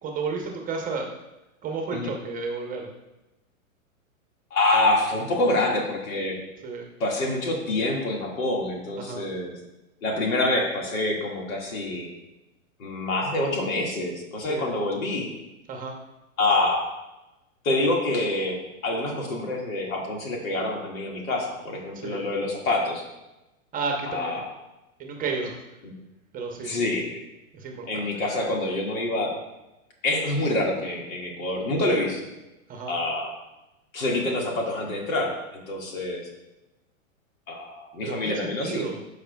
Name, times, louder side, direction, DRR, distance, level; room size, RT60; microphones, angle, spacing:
voice 1, 0.0-1.1 1.6-2.9 6.6-6.9 9.0-9.2 14.4-14.7 15.7-15.9 21.9-22.2 23.7-24.4 25.0-25.6 26.3-26.7 27.5-28.1 32.7-32.9 38.0-39.0, right 4 dB, 20° right, 2 dB, 0.8 m, -32 dB
voice 2, 4.5-6.4 7.0-9.6 10.0-12.1 12.8-15.3 16.4-16.9 17.6-18.6 18.8-23.0 24.1-24.5 25.8-25.9 26.6-27.2 27.9-29.3 30.0-32.3 32.9-33.3 33.9-36.3 37.5-38.8, left 2 dB, 75° left, 0 dB, 2.0 m, -26 dB
11.5 x 4.9 x 2.3 m, 0.99 s
hypercardioid pair, 125°, 42 cm